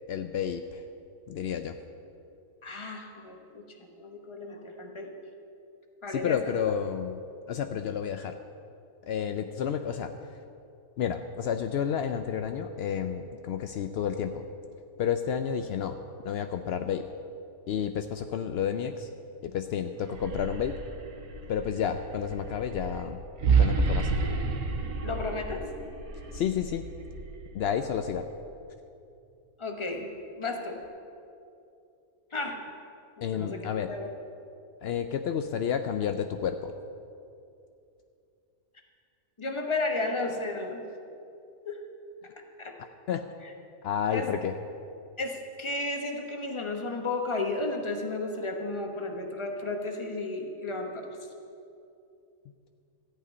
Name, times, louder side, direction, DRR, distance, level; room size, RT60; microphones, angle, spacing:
voice 1, 0.1-0.8 1.3-1.7 6.1-7.2 7.5-8.4 9.1-10.1 11.0-14.4 15.0-16.0 16.2-17.1 17.7-19.1 19.4-20.8 21.5-23.2 23.6-24.1 26.3-26.9 27.5-28.2 33.2-33.9 34.8-36.7 43.1-43.2 43.8-44.5, left 8 dB, 75° left, 7 dB, 0.5 m, -30 dB
voice 2, 2.6-5.1 6.0-6.6 25.0-25.6 29.6-30.1 30.4-30.8 32.3-32.6 33.2-34.1 39.4-40.8 41.6-41.8 42.6-42.7 43.4-43.5 44.1-44.3 45.2-51.1, left 2 dB, 20° left, 3 dB, 1.0 m, -33 dB
sound 1, 20.0-28.1, right 4 dB, 75° right, 1.4 m, -30 dB
14.0 x 5.6 x 9.4 m, 2.6 s
omnidirectional pair, 1.6 m